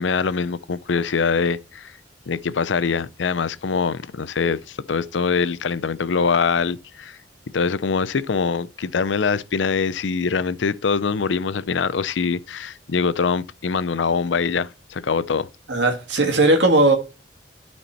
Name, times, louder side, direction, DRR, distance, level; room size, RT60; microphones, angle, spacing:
voice 1, 0.0-1.9 2.3-7.2 7.5-15.5, left 5 dB, 85° left, 0.5 m, -23 dB
voice 2, 15.7-16.9, right 2 dB, 75° right, 1.9 m, -17 dB
12.0 x 4.4 x 4.3 m
head